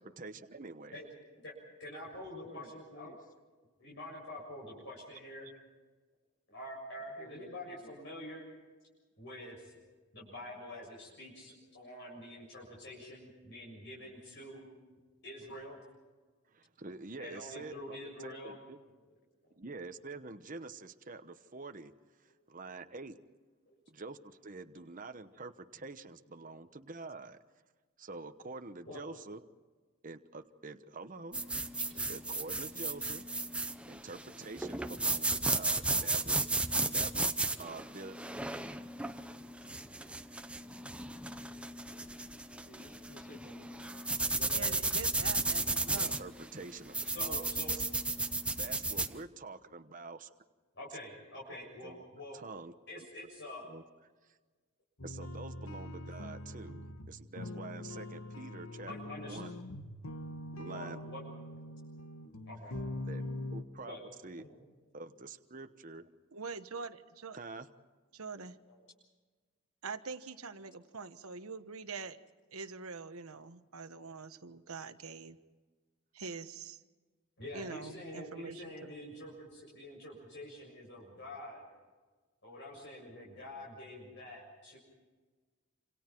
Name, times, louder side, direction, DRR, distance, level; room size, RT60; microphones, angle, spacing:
voice 1, 0.0-1.0 16.5-18.8 19.6-21.9 22.2-23.2 23.9-27.4 28.0-29.5 30.0-31.4 32.1-33.3 33.8-38.2 45.9-47.5 48.6-50.3 51.5-51.6 51.8-52.0 52.3-53.1 53.7-53.8 54.3-54.4 55.0-59.5 60.5-61.0 63.0-64.0 64.2-64.4 64.9-66.1 67.3-67.7, right 3 dB, 40° right, 8 dB, 1.0 m, -47 dB
voice 2, 1.8-3.1 3.8-5.5 6.5-8.5 9.2-9.7 10.1-14.8 15.2-15.8 17.2-18.6 19.4-19.6 23.7-23.8 26.5-26.6 28.9-29.0 31.8-32.1 47.0-47.7 50.7-52.4 52.9-53.7 58.9-59.4 60.7-61.2 61.5-61.6 62.5-62.9 63.9-64.0 64.4-64.6 65.6-65.7 68.7-68.8 77.4-81.7 82.4-84.8, left 1 dB, 55° left, -3 dB, 7.1 m, -47 dB
voice 3, 2.3-3.2 4.7-4.9 7.2-8.0 42.7-43.9 44.3-44.9 45.4-45.5, left 1 dB, 40° left, 6 dB, 1.7 m, -53 dB
sound 1, 31.3-49.1, right 2 dB, 5° right, 0.7 m, -34 dB
voice 4, 44.6-46.2 66.3-67.4 68.1-68.6 69.8-72.2 72.5-75.4 76.1-76.8 77.5-78.9, right 4 dB, 85° right, 9 dB, 1.3 m, -44 dB
sound 2, 55.0-63.6, left 1 dB, 70° left, 1.5 m, -43 dB
27.5 x 27.5 x 4.6 m, 1.3 s
head